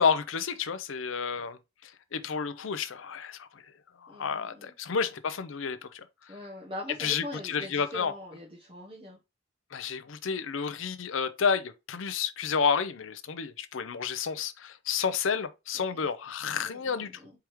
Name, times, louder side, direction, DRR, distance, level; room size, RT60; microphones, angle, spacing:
voice 1, 0.0-1.6 2.1-3.5 4.0-6.0 7.0-8.1 9.7-17.1, left 6 dB, 85° left, 0.6 m, -30 dB
voice 2, 4.1-4.7 6.3-9.2 15.8-16.1 16.6-17.3, left 1 dB, 25° right, 0.9 m, -42 dB
4.7 x 3.5 x 3.0 m
head